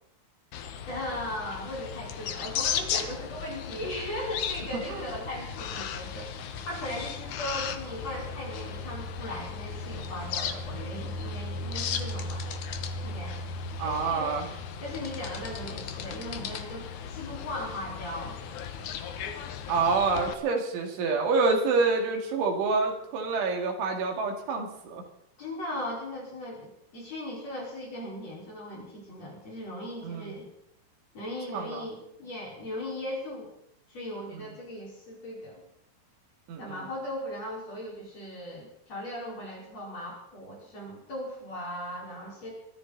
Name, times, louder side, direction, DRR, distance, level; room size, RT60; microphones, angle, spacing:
sound 1, 0.5-20.3, left 6 dB, 80° left, 1.7 m, -36 dB
voice 1, 0.9-6.4 6.7-12.4 13.0-13.4 13.8-14.3 14.8-18.4 25.4-30.5 31.1-33.5 33.9-35.6 36.6-42.5, left 1 dB, 35° left, -3 dB, 5.9 m, -38 dB
voice 2, 4.7-5.0 13.8-14.5 19.7-25.0 30.0-30.3 31.5-31.8 36.5-36.8, right 4 dB, 90° right, 2 dB, 4.9 m, -27 dB
23.0 x 14.0 x 4.2 m, 0.74 s
omnidirectional pair, 5.3 m